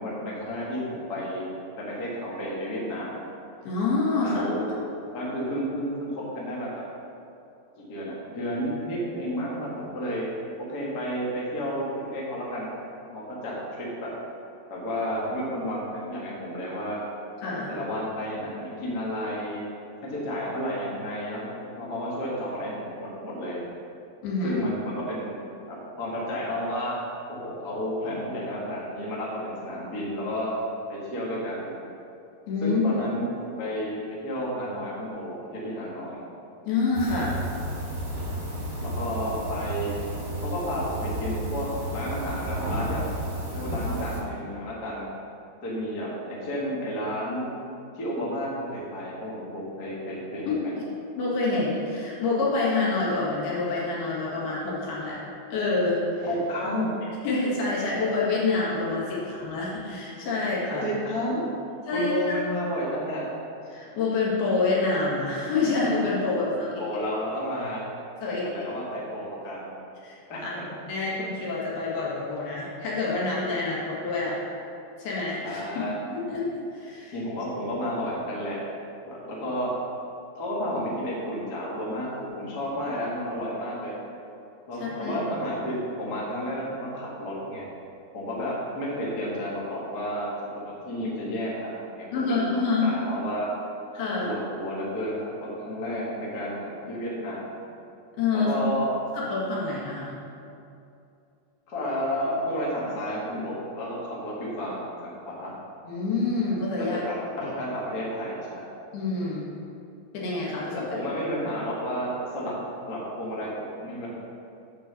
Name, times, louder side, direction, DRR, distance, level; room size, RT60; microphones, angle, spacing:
voice 1, 0.0-1.5 1.8-3.2 4.2-4.7 5.1-6.7 7.8-10.3 10.6-12.7 13.1-14.1 14.7-17.0 17.7-19.6 20.0-23.6 24.4-27.0 27.3-30.5 30.9-31.7 32.6-36.2 38.8-40.0 40.4-43.1 43.5-45.1 45.6-47.5 47.9-50.7 56.2-56.9 60.8-61.4 61.9-63.3 66.8-67.8 68.2-69.7 70.3-70.6 75.4-75.9 77.1-78.6 79.0-79.7 80.4-84.0 84.7-87.7 88.1-92.5 92.8-93.5 94.2-97.5 98.3-98.9 101.7-105.5 107.1-108.7 110.7-112.5 112.8-114.1, equal, 45° left, -6 dB, 1.3 m, -31 dB
voice 2, 3.7-4.4 17.4-17.7 24.2-24.6 32.5-32.8 36.7-37.4 50.5-50.7 51.2-55.2 55.5-56.3 57.2-60.9 61.9-62.1 63.7-66.7 68.2-68.4 70.0-70.2 70.4-74.4 75.0-77.1 84.8-85.2 92.1-93.0 94.0-94.3 98.2-98.5 99.1-100.1 105.9-107.0 107.4-107.5 108.9-109.5 110.1-110.8, left 3 dB, 70° left, -6 dB, 3.7 m, -27 dB
sound 1, 36.9-44.2, right 1 dB, 30° right, 1.5 m, -32 dB
8.6 x 5.4 x 6.8 m, 2.7 s
omnidirectional pair, 4.8 m